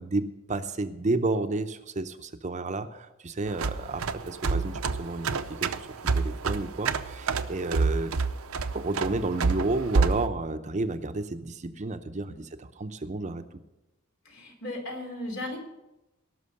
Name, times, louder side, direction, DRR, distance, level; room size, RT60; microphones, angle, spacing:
voice 1, 0.0-5.9 6.1-8.1 8.7-13.4, right 2 dB, 35° right, 9 dB, 0.6 m, -31 dB
sound 1, 3.5-10.3, right 4 dB, 80° right, 0.6 m, -28 dB
voice 2, 14.2-15.6, left 1 dB, 75° left, 2 dB, 3.3 m, -36 dB
18.0 x 6.1 x 6.5 m, 0.99 s
head